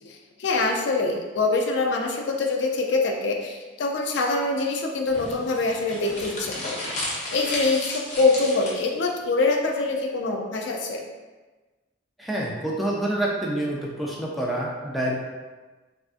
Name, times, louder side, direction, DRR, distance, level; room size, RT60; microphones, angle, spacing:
voice 1, 0.0-11.0, left 3 dB, 70° left, 2 dB, 0.4 m, -25 dB
sound 1, 5.1-9.1, left 1 dB, 40° left, 0.7 m, -33 dB
voice 2, 12.2-15.1, right 1 dB, ahead, -4 dB, 0.3 m, -27 dB
3.3 x 2.5 x 2.4 m, 1.3 s
head